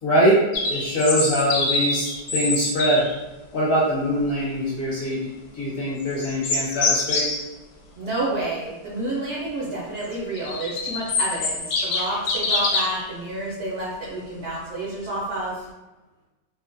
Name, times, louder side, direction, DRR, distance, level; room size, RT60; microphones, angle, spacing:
voice 1, 0.0-3.1 3.5-7.3, equal, 55° left, -8 dB, 1.1 m, -23 dB
sound 1, 0.5-3.1 6.0-7.4 10.1-13.0, left 3 dB, 90° left, 0.6 m, -25 dB
voice 2, 8.0-15.6, right 1 dB, 65° right, -6 dB, 0.7 m, -29 dB
2.9 x 2.0 x 2.5 m, 1.1 s
omnidirectional pair, 1.9 m